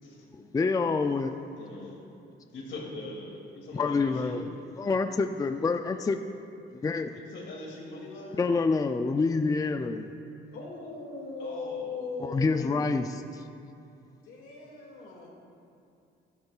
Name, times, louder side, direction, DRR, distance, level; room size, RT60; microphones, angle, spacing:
voice 1, 0.4-1.3 3.7-4.5 4.8-6.2 6.7-7.1 8.3-10.1 12.2-13.4, left 4 dB, 20° left, 8 dB, 0.4 m, -27 dB
voice 2, 1.6-2.0 2.5-4.4 7.1-8.5 11.4-12.1, left 2 dB, 70° left, -2 dB, 2.5 m, -42 dB
voice 3, 10.5-12.9 14.2-15.3, left 4 dB, 90° left, -2 dB, 2.2 m, -38 dB
14.0 x 11.5 x 2.4 m, 2.5 s
cardioid pair, 90°, 20 cm